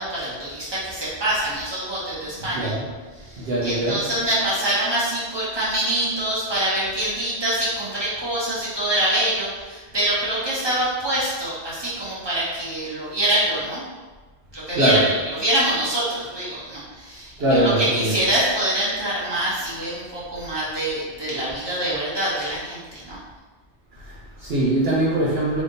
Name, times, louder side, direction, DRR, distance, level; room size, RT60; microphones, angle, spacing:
voice 1, 0.0-2.7 3.2-13.8 14.5-15.1 15.4-23.2, right 1 dB, 25° right, -9 dB, 1.4 m, -25 dB
voice 2, 2.5-2.9 3.4-4.1 14.7-15.1 17.4-18.2 23.9-25.6, right 1 dB, 65° right, -6 dB, 1.0 m, -22 dB
3.4 x 3.1 x 3.9 m, 1.3 s
omnidirectional pair, 1.1 m